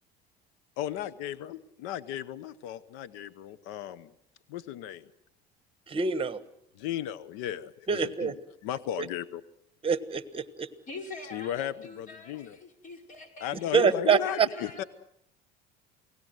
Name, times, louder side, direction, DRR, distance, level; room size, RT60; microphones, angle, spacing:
voice 1, 0.8-4.1 4.5-5.1 6.7-8.3 8.6-9.4 11.3-12.6 13.4-14.8, left 11 dB, 80° left, 16 dB, 0.9 m, -35 dB
voice 2, 5.9-6.4 7.9-8.3 9.8-10.7 13.7-14.5, right 6 dB, 25° right, 14 dB, 1.4 m, -25 dB
voice 3, 10.9-13.6 14.1-14.9, left 3 dB, 40° left, 4 dB, 5.2 m, -45 dB
29.0 x 18.0 x 8.0 m, 0.77 s
cardioid pair, 115°, 21 cm